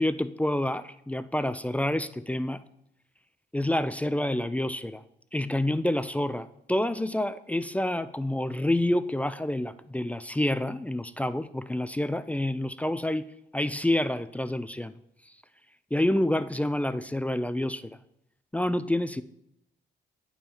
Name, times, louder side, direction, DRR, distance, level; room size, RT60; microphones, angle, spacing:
voice 1, 0.0-2.6 3.5-5.0 5.3-13.3 13.5-14.9 15.9-18.0 18.5-19.2, left 1 dB, 5° left, 13 dB, 0.3 m, -28 dB
8.6 x 5.3 x 4.4 m, 0.78 s
cardioid pair, 90°, 20 cm